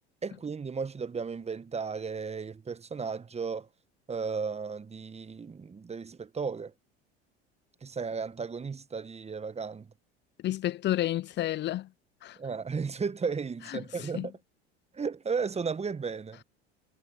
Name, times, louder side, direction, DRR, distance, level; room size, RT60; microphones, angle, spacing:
voice 1, 0.2-3.7 4.1-6.7 7.8-9.9 12.4-14.3 14.9-16.4, right 5 dB, 20° right, 1.3 m, -34 dB
voice 2, 10.4-11.9 12.2-12.4 13.7-14.3, left 14 dB, 35° left, 0.5 m, -31 dB
hypercardioid pair, 80°, 33 cm